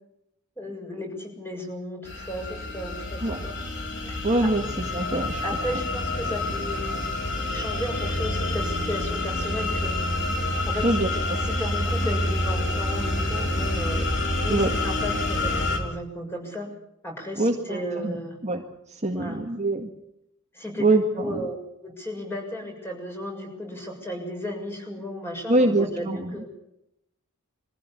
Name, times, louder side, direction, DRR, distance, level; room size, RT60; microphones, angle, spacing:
voice 1, 0.6-3.6 4.0-4.5 5.4-7.1 7.4-10.0 10.7-14.2 14.4-16.7 17.0-18.4 19.1-19.4 20.5-21.6 21.8-26.5, equal, 10° left, 2 dB, 6.9 m, -34 dB
sound 1, 2.0-15.8, left 1 dB, 55° left, 4.1 m, -27 dB
voice 2, 4.2-4.6 4.9-5.4 10.8-11.4 14.5-14.7 17.4-17.8 18.0-18.1 18.4-18.6 19.0-19.9 20.8-21.4 25.5-26.4, right 2 dB, 30° right, 3 dB, 1.8 m, -24 dB
23.5 x 15.0 x 8.6 m, 0.80 s
head